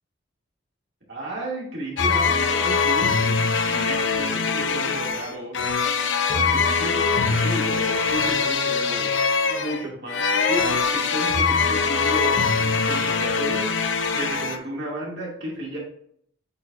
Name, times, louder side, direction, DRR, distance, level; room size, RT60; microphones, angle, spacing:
voice 1, 1.1-5.6 6.0-9.2 9.4-15.8, right 1 dB, 60° right, -4 dB, 2.4 m, -33 dB
sound 1, 2.0-14.6, left 5 dB, 70° left, 0.6 m, -22 dB
8.5 x 4.4 x 2.5 m, 0.66 s
head